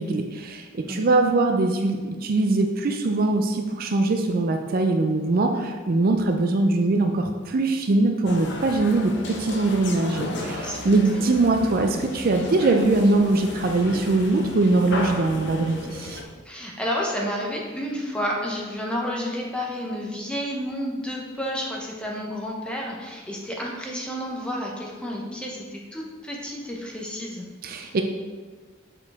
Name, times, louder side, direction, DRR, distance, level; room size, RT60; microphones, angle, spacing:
voice 1, 0.0-16.2 27.6-28.0, right 2 dB, 45° right, 4 dB, 0.4 m, -22 dB
sound 1, 8.2-16.2, left 2 dB, 55° left, 0.6 m, -34 dB
voice 2, 10.3-11.0 16.4-27.4 27.7-27.9, equal, 5° left, -2 dB, 0.9 m, -31 dB
6.9 x 4.6 x 3.5 m, 1.4 s
head